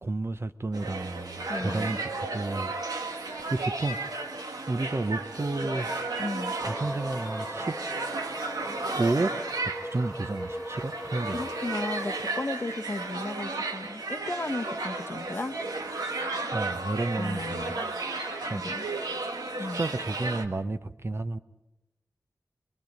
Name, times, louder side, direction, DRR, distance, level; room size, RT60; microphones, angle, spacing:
voice 1, 0.0-2.7 3.2-4.1 4.7-6.0 6.6-7.7 9.0-9.3 9.9-11.4 16.5-17.7 18.5-18.9 19.6-21.4, right 2 dB, 40° right, 10 dB, 0.7 m, -31 dB
sound 1, 0.7-20.4, right 3 dB, 75° right, 1.7 m, -34 dB
voice 2, 1.5-2.0 6.2-6.5 11.3-15.6 17.2-17.9 18.4-18.9 19.6-19.8, left 2 dB, 35° left, 7 dB, 0.9 m, -35 dB
sound 2, 6.6-15.5, equal, ahead, 2.4 m, -40 dB
23.5 x 22.5 x 5.3 m, 0.93 s
wide cardioid pair, 95°, 7 cm